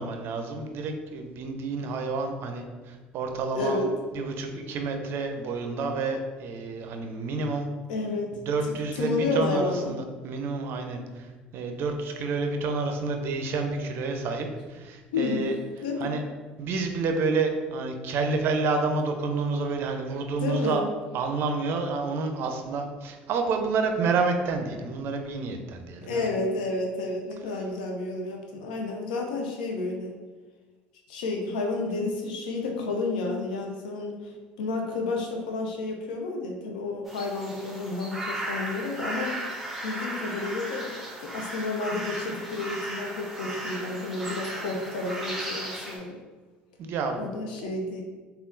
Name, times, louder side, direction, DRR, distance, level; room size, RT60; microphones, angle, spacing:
voice 1, 0.0-3.8 4.1-7.7 8.3-11.0 11.5-15.6 16.0-16.2 16.6-20.8 21.1-26.2 46.8-47.3 47.6-47.7, right 4 dB, 55° right, 5 dB, 0.4 m, -29 dB
voice 2, 3.5-3.9 7.9-8.3 8.7-10.0 15.1-15.5 15.8-16.1 20.4-20.8 26.0-30.1 31.1-34.3 34.6-39.3 39.8-40.9 41.2-46.2 47.2-48.0, left 3 dB, 85° left, 2 dB, 0.5 m, -31 dB
sound 1, 37.1-46.0, right 1 dB, 5° right, 0.8 m, -36 dB
3.5 x 2.3 x 2.6 m, 1.3 s
hypercardioid pair, 70°, 5 cm